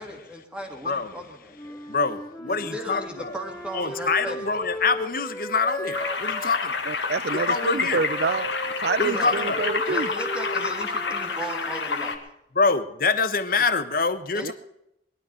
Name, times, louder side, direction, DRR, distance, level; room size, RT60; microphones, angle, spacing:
voice 1, 0.0-1.8 2.5-4.4 9.1-9.4 9.9-12.2 14.3-14.5, equal, 5° right, 2.4 m, -36 dB
voice 2, 0.8-1.2 1.9-3.3 3.7-6.8 7.5-8.0 9.0-9.7 12.5-14.5, left 4 dB, 50° left, 1.1 m, -25 dB
Wind instrument woodwind instrument, 1.5-6.5 7.2-12.2, equal, 15° left, 3.2 m, -37 dB
sound 1, 5.9-12.2, left 4 dB, 75° left, 2.0 m, -29 dB
voice 3, 6.9-8.5 8.8-10.1 14.4-14.5, right 4 dB, 55° right, 0.4 m, -27 dB
21.5 x 12.5 x 4.5 m
head